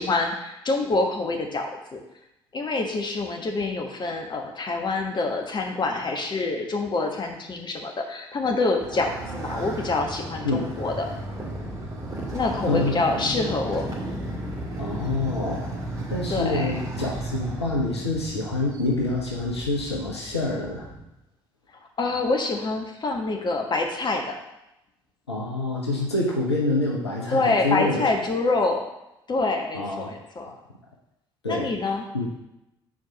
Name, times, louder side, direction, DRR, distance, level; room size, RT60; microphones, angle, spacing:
voice 1, 0.0-2.0 2.5-11.1 12.3-13.9 16.3-16.7 22.0-24.4 27.3-28.8 29.3-30.5 31.5-32.0, left 3 dB, 35° left, 2 dB, 1.2 m, -26 dB
Motorcycle, 8.8-21.0, right 1 dB, 25° right, 2.3 m, -34 dB
voice 2, 12.7-13.0 14.8-15.6 16.1-20.9 25.3-28.1 29.7-30.1 31.4-32.3, left 2 dB, 85° left, -2 dB, 0.8 m, -27 dB
4.7 x 4.6 x 5.7 m, 0.88 s
figure-of-eight pair, 50°, 14 cm